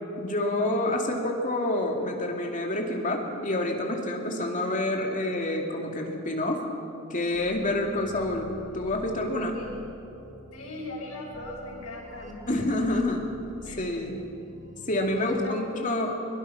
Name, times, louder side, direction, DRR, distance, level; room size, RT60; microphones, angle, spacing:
voice 1, 0.2-6.6 7.1-9.6 12.5-13.3 13.8-14.2 14.9-16.2, left 1 dB, 35° left, 1 dB, 2.5 m, -28 dB
sound 1, 7.3-15.3, equal, 35° right, 2.3 m, -47 dB
voice 2, 9.5-9.9 10.5-12.4 13.6-13.8 15.1-16.2, left 2 dB, 85° left, -1 dB, 5.9 m, -40 dB
23.0 x 22.5 x 5.9 m, 2.9 s
head